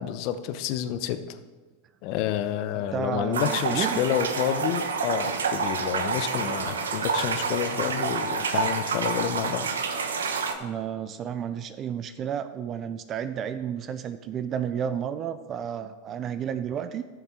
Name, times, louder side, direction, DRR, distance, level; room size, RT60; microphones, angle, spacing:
voice 1, 0.0-1.4 2.0-9.7, left 10 dB, 50° left, 11 dB, 0.7 m, -29 dB
voice 2, 2.9-4.0 10.6-17.1, right 8 dB, 35° right, 12 dB, 0.5 m, -31 dB
sound 1, 3.3-10.5, right 5 dB, 75° right, 0.8 m, -28 dB
11.0 x 6.9 x 4.4 m, 1.3 s
hypercardioid pair, 90°, 0 cm